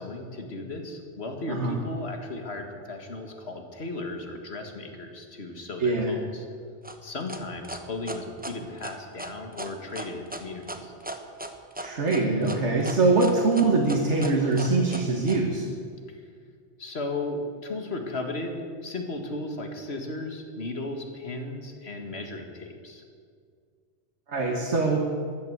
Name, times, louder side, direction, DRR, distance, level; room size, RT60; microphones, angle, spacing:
voice 1, 0.0-6.5 7.0-10.9 16.1-16.3 16.8-23.0, left 2 dB, 60° left, 4 dB, 2.1 m, -35 dB
voice 2, 5.8-6.1 11.8-15.7 24.3-25.1, right 3 dB, 70° right, 0 dB, 1.9 m, -23 dB
sound 1, 6.8-15.4, right 1 dB, 10° right, 0.9 m, -37 dB
14.0 x 11.5 x 8.0 m, 2.1 s
omnidirectional pair, 1.2 m